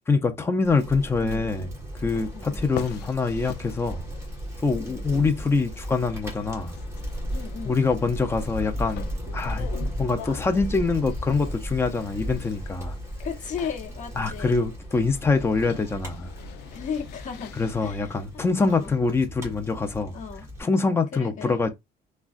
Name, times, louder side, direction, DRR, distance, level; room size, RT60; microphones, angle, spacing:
voice 1, 0.1-1.7 2.0-4.0 4.6-6.8 7.6-9.1 9.3-12.9 14.2-16.3 17.6-20.2 20.6-21.7, left 4 dB, 15° left, 0.5 m, -25 dB
Bicycle, 0.6-20.6, equal, 15° right, 1.5 m, -36 dB
sound 1, 2.1-17.9, left 10 dB, 75° left, 0.4 m, -44 dB
voice 2, 2.3-2.7 4.7-5.0 7.3-7.8 13.2-14.6 16.7-18.2 18.7-18.9 20.1-20.5 21.1-21.6, left 6 dB, 50° left, 1.0 m, -36 dB
3.5 x 2.2 x 2.4 m
cardioid pair, 110°, 17 cm